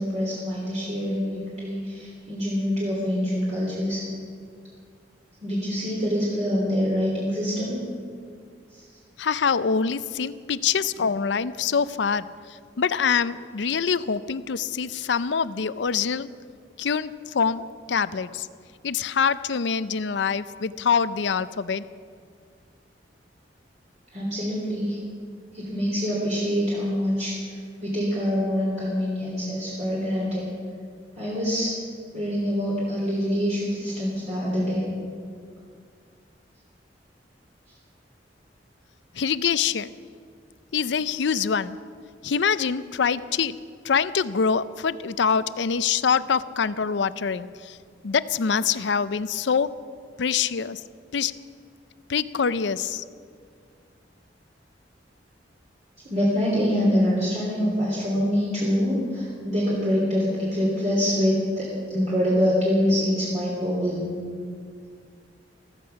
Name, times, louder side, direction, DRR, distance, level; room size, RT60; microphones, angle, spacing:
voice 1, 0.0-4.0 5.4-7.8 24.1-25.0 25.5-27.3 27.8-30.4 31.2-31.7 32.1-34.9 56.1-64.1, equal, 40° right, -5 dB, 3.2 m, -25 dB
voice 2, 9.2-16.3 16.8-18.5 18.8-21.8 39.1-39.9 40.7-41.8 42.2-43.6 43.8-47.8 48.0-49.7 50.2-50.8 51.1-51.3 52.1-53.0, left 6 dB, 70° left, 15 dB, 0.5 m, -25 dB
15.0 x 14.5 x 5.8 m, 2.2 s
head